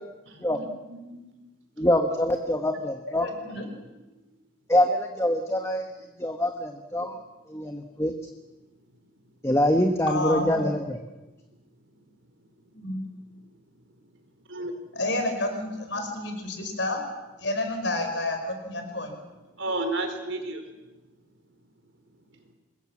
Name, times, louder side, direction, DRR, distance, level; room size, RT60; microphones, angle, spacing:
voice 1, 0.3-1.5 14.5-14.7 19.6-20.6, right 2 dB, 80° right, 6 dB, 3.9 m, -33 dB
voice 2, 1.8-3.3 4.7-5.9 6.2-7.2 7.5-8.1 9.4-11.0, left 1 dB, 15° left, 5 dB, 1.2 m, -24 dB
voice 3, 3.1-3.7 10.1-10.7 12.7-13.0 14.9-17.0 17.4-19.2, left 2 dB, 70° left, 5 dB, 5.0 m, -30 dB
25.5 x 21.0 x 7.3 m, 1.1 s
head